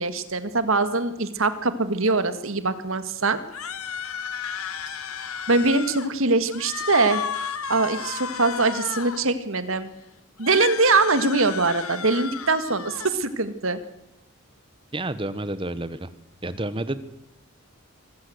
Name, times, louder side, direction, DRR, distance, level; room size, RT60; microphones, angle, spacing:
voice 1, 0.0-3.4 5.5-7.2 7.7-9.9 10.4-13.8, right 3 dB, 70° right, 11 dB, 1.8 m, -22 dB
sound 1, 3.5-6.1 6.5-9.3 10.4-13.1, left 7 dB, 85° left, 1.5 m, -33 dB
voice 2, 14.9-16.1 16.4-17.0, right 1 dB, 25° right, 13 dB, 1.1 m, -29 dB
24.0 x 15.5 x 8.0 m, 0.86 s
head